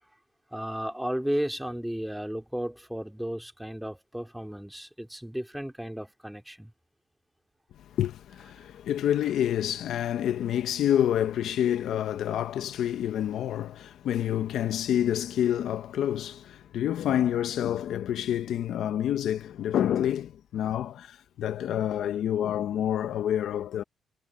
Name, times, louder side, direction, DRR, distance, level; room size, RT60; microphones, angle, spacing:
voice 1, 0.5-6.7, equal, 5° right, 3.3 m, -34 dB
voice 2, 7.8-23.8, left 10 dB, 75° left, 1.1 m, -28 dB
cardioid pair, 90°, 0 cm